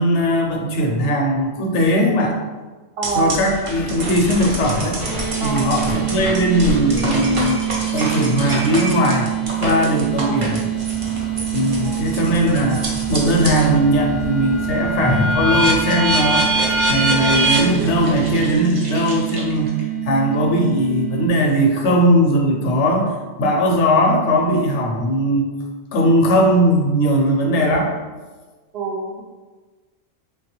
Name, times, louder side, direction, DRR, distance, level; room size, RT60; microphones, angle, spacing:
voice 1, 0.0-2.4 3.1-5.0 5.4-7.6 7.9-9.3 9.6-10.7 11.5-19.7 20.0-25.5 25.9-27.9, equal, 70° left, 1 dB, 0.8 m, -19 dB
sound 1, 3.0-13.7 14.1-19.8, right 1 dB, 45° right, 0.4 m, -25 dB
voice 2, 3.0-3.4 5.4-5.7 10.2-10.5 11.8-12.0 28.7-29.2, right 4 dB, 65° right, -2 dB, 0.8 m, -25 dB
sound 2, 5.0-21.3, right 15 dB, 20° right, 0.8 m, -26 dB
sound 3, 10.7-18.5, left 2 dB, 45° left, 0.3 m, -31 dB
3.3 x 2.3 x 2.9 m, 1.3 s
omnidirectional pair, 1.3 m